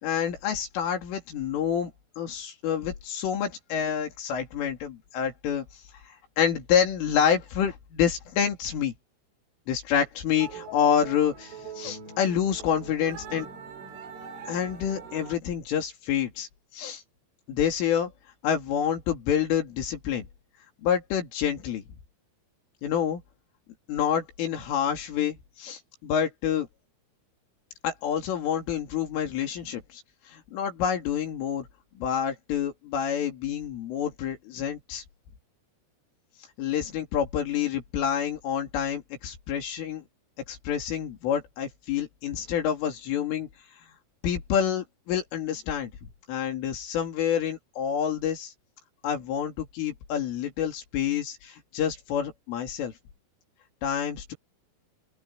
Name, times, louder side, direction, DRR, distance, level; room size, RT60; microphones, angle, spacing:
voice 1, 0.0-5.7 6.1-8.9 9.7-13.5 14.5-16.5 16.7-17.0 17.5-18.1 18.4-20.3 20.8-21.8 22.8-23.2 23.9-26.7 27.8-30.0 30.3-31.7 32.0-35.0 36.6-40.1 40.5-43.5 44.2-45.9 46.3-48.5 49.0-52.9 53.8-54.3, left 8 dB, 75° left, 5.6 m, -28 dB
sound 1, 10.3-15.4, right 4 dB, 70° right, 10.5 m, -42 dB
open air
omnidirectional pair, 5.9 m